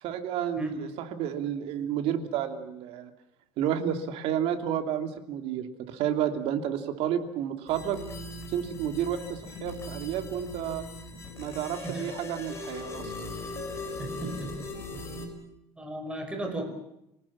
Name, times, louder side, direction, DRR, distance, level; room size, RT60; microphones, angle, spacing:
voice 1, 0.0-3.1 3.6-8.0 8.5-10.8 11.4-13.1, right 9 dB, 65° right, 6 dB, 2.8 m, -31 dB
sound 1, 7.7-15.3, left 2 dB, 25° left, 5.7 m, -39 dB
voice 2, 14.0-14.5 14.9-15.3 15.8-16.6, right 1 dB, 10° right, 4 dB, 5.7 m, -36 dB
27.5 x 18.5 x 7.3 m, 0.83 s
cardioid pair, 140°, 11 cm